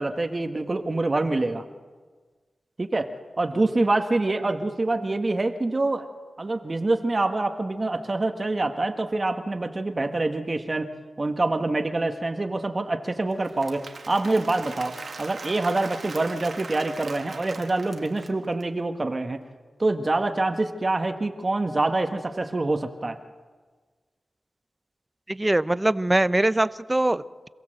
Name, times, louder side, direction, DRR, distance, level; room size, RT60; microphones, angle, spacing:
voice 1, 0.0-1.6 2.8-3.1 3.4-6.1 6.4-10.9 11.2-19.4 19.8-23.2, right 2 dB, 40° right, 6 dB, 1.6 m, -26 dB
Applause / Crowd, 13.3-18.6, right 4 dB, 70° right, 2.1 m, -40 dB
voice 2, 25.3-27.5, right 1 dB, 20° right, 15 dB, 0.8 m, -23 dB
27.0 x 16.0 x 7.9 m, 1.5 s
cardioid pair, 50°, 0 cm